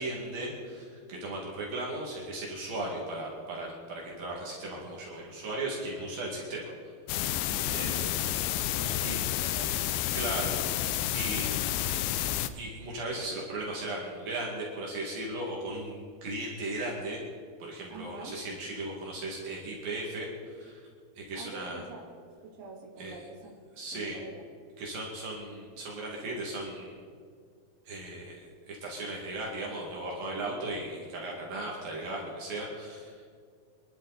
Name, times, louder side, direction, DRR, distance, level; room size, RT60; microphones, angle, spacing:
voice 1, 0.0-6.7 7.7-7.9 9.0-9.2 10.1-12.0 12.5-17.2 17.6-20.7 21.2-21.8 23.0-23.2 23.8-24.2 24.8-27.0 27.9-33.3, right 2 dB, 65° right, -3 dB, 3.8 m, -37 dB
sound 1, 7.1-12.5, left 12 dB, 80° left, 2.4 m, -30 dB
voice 2, 7.8-9.7 17.9-18.4 21.3-22.1 22.6-23.4 23.9-24.4, right 3 dB, 45° right, -3 dB, 3.5 m, -45 dB
25.5 x 12.0 x 4.1 m, 2.1 s
omnidirectional pair, 4.6 m